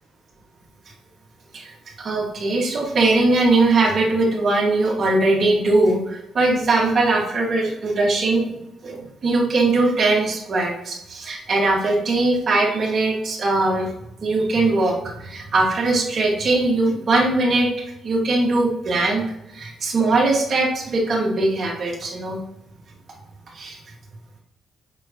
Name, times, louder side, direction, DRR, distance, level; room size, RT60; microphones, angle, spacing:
voice 1, 1.5-8.6 8.8-13.9 14.2-19.2 19.5-22.4 23.5-23.8, right 2 dB, 50° right, -1 dB, 1.9 m, -20 dB
6.8 x 5.9 x 3.0 m, 0.86 s
cardioid pair, 90°, 0 cm